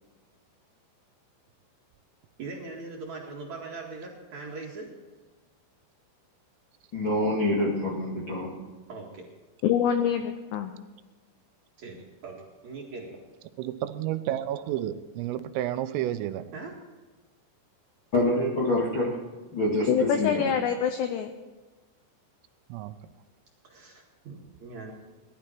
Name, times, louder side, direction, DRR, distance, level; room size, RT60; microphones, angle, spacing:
voice 1, 2.4-4.9 8.9-9.2 11.8-13.2 16.5-16.7 23.6-24.9, right 3 dB, 50° right, -2 dB, 2.4 m, -41 dB
voice 2, 6.9-8.5 18.1-19.2 19.5-20.4, left 1 dB, 45° left, -6 dB, 1.5 m, -26 dB
voice 3, 9.6-10.7 19.9-21.3, left 8 dB, 85° left, 7 dB, 2.4 m, -25 dB
voice 4, 13.6-16.5 22.7-22.9, right 12 dB, 85° right, 11 dB, 3.4 m, -31 dB
19.5 x 12.0 x 4.5 m, 1.3 s
omnidirectional pair, 5.8 m